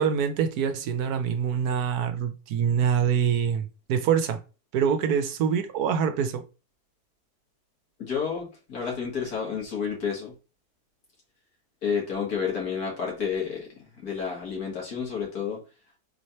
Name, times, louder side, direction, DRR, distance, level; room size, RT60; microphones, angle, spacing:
voice 1, 0.0-4.4 4.7-6.4, right 7 dB, 75° right, 1.1 m, -25 dB
voice 2, 8.0-10.4 11.8-15.6, left 6 dB, 65° left, 2.3 m, -30 dB
4.4 x 3.2 x 2.7 m
omnidirectional pair, 1.7 m